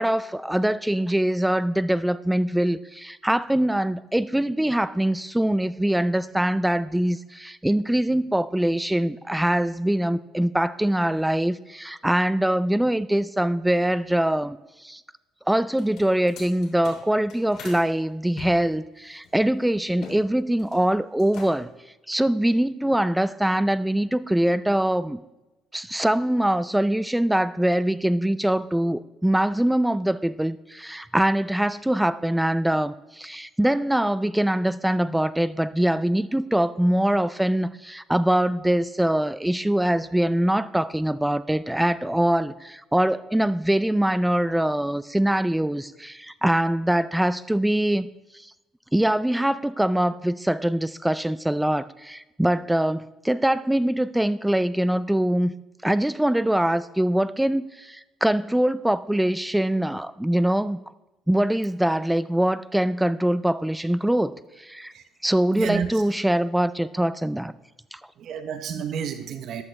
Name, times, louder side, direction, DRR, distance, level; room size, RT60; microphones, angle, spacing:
voice 1, 0.0-14.6 14.8-15.0 15.5-21.7 22.1-25.2 25.7-48.1 48.9-55.5 55.8-60.8 61.3-64.9 65.2-67.5 67.9-68.0, right 1 dB, 5° right, 15 dB, 0.3 m, -23 dB
sound 1, 15.7-17.8 18.3-20.2 20.5-20.9 21.2-21.8, left 4 dB, 60° left, 3.1 m, -43 dB
voice 2, 65.6-66.0 68.2-69.6, right 7 dB, 50° right, 9 dB, 0.7 m, -30 dB
14.0 x 11.0 x 3.2 m, 1.0 s
cardioid pair, 145°, 0 cm